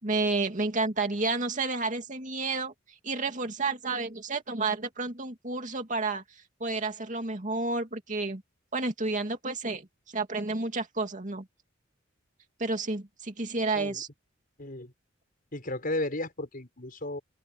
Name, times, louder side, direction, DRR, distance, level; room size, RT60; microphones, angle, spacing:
voice 1, 0.0-2.7 3.0-8.4 8.7-9.9 10.1-11.5 12.6-14.1, right 3 dB, 40° right, 2.5 m, -30 dB
voice 2, 14.6-14.9 15.5-17.2, left 1 dB, 45° left, 5.7 m, -34 dB
open air
head